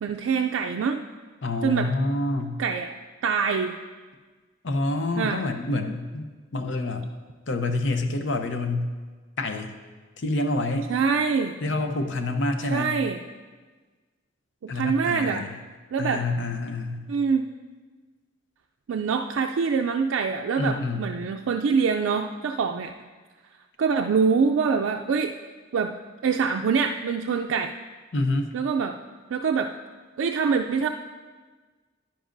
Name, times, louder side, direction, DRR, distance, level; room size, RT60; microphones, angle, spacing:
voice 1, 0.0-1.0 1.6-1.9 2.6-2.9 3.2-3.8 5.2-5.4 10.9-11.6 12.7-13.2 14.6-15.5 15.9-16.2 17.1-17.5 18.9-22.9 23.8-25.3 25.7-26.0 26.2-27.7 28.5-29.0 29.3-29.7 30.2-30.9, right 5 dB, 85° right, 3 dB, 0.4 m, -24 dB
voice 2, 1.4-2.6 4.6-7.1 7.5-8.9 9.4-9.7 10.2-10.9 11.6-13.0 14.7-15.5 16.0-17.1 20.6-21.1 28.1-28.5, left 2 dB, 65° left, 6 dB, 0.7 m, -27 dB
10.5 x 10.0 x 2.6 m, 1.4 s
head